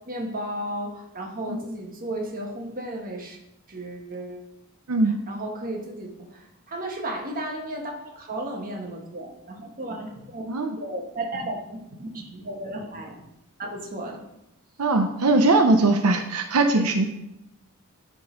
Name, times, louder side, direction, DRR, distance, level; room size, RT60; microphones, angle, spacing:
voice 1, 0.1-3.4 3.7-4.5 5.3-6.4 6.7-10.4 10.8-13.2 13.6-14.2 16.7-16.9, right 1 dB, 40° right, 1 dB, 1.4 m, -34 dB
voice 2, 14.8-17.1, right 2 dB, 85° right, 5 dB, 0.7 m, -20 dB
10.5 x 3.8 x 5.1 m, 0.88 s
head